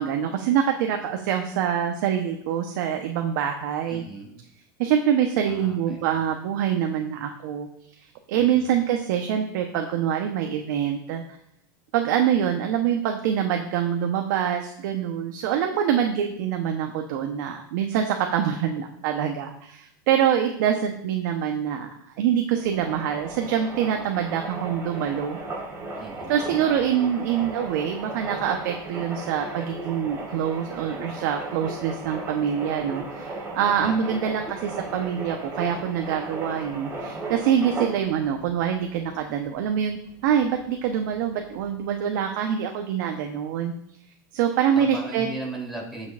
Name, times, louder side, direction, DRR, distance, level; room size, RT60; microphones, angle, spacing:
voice 1, 0.0-4.0 4.8-7.7 8.3-11.2 11.9-25.4 26.3-33.3 33.5-43.7 44.3-45.3, right 9 dB, 65° right, 4 dB, 1.0 m, -25 dB
voice 2, 3.9-4.4 5.4-6.3 8.4-8.8 26.0-26.5 33.8-34.2 44.7-46.1, right 2 dB, ahead, -4 dB, 3.6 m, -38 dB
sound 1, 22.5-41.9, right 2 dB, 20° right, 4.4 m, -36 dB
18.5 x 6.4 x 2.6 m, 0.74 s
supercardioid pair, 120°, 11 cm